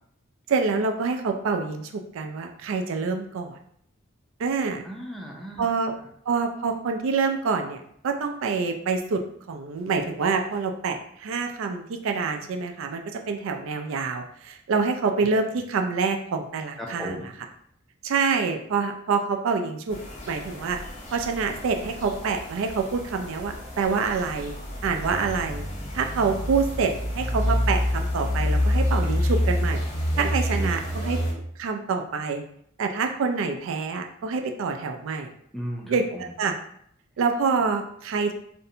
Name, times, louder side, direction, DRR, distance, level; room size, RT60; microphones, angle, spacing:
voice 1, 0.5-3.6 4.4-4.8 5.6-5.9 6.3-9.2 9.5-17.1 18.0-20.0 20.3-20.8 21.1-24.5 24.8-25.6 25.9-29.8 30.2-31.2 31.6-32.4 32.8-35.3 35.9-36.0 36.4-36.5 37.2-38.3, right 5 dB, 70° right, 5 dB, 0.3 m, -26 dB
voice 2, 4.8-5.7 16.8-17.3 30.1-30.7 35.5-36.3, equal, ahead, -2 dB, 0.4 m, -36 dB
sound 1, 19.9-31.3, left 1 dB, 35° left, 0.7 m, -28 dB
2.5 x 2.1 x 2.7 m, 0.68 s
head